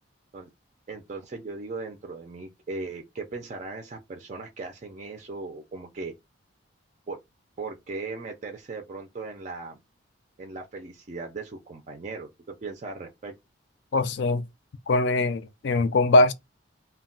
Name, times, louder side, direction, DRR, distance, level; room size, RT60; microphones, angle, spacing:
voice 1, 0.9-6.1 7.1-7.2 7.6-9.8 10.4-13.3, right 3 dB, 35° right, 0.4 m, -38 dB
voice 2, 13.9-14.4 14.9-16.3, left 2 dB, 60° left, 0.4 m, -21 dB
2.2 x 2.2 x 3.7 m
head